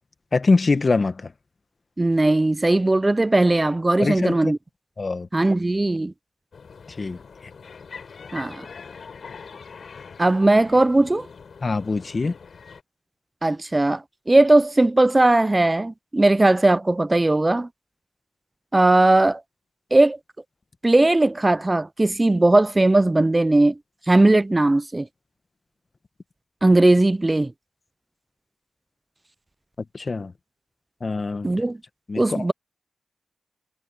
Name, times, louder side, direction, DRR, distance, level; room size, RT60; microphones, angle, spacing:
voice 1, 0.3-1.3 4.0-4.5 5.0-5.3 7.0-7.2 11.6-12.3 29.9-30.3 31.0-31.5 32.1-32.5, left 3 dB, 45° left, 1.4 m, -23 dB
voice 2, 2.0-4.6 5.3-6.1 8.3-8.7 10.2-11.3 13.4-17.7 18.7-19.4 19.9-20.2 20.8-23.8 24.1-25.1 26.6-27.5 31.4-31.8 32.2-32.5, right 2 dB, 25° right, 0.4 m, -18 dB
sound 1, 6.5-12.8, left 5 dB, 70° left, 4.8 m, -42 dB
cardioid pair, 65°, 0 cm